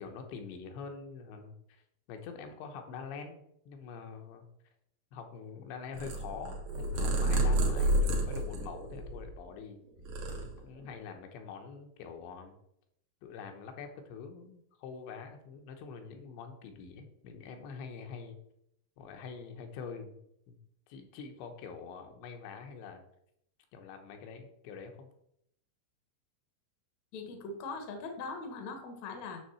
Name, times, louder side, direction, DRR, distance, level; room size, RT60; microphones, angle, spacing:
voice 1, 0.0-1.8 2.1-4.5 5.1-9.8 10.3-12.6 13.2-18.4 19.0-20.2 20.5-20.6 20.9-23.0 23.7-25.1, left 5 dB, 80° left, 4 dB, 3.3 m, -45 dB
Purr, 5.9-9.5 9.9-11.0, right 1 dB, 65° right, 1.7 m, -30 dB
voice 2, 27.1-29.4, left 3 dB, 65° left, 5 dB, 1.7 m, -41 dB
9.6 x 3.7 x 6.9 m, 0.75 s
omnidirectional pair, 5.1 m